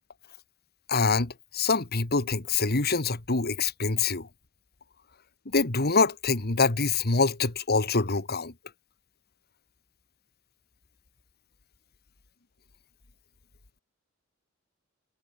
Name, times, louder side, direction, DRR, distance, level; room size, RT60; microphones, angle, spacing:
voice 1, 0.9-4.3 5.5-8.5, left 4 dB, 50° left, 1.8 m, -25 dB
head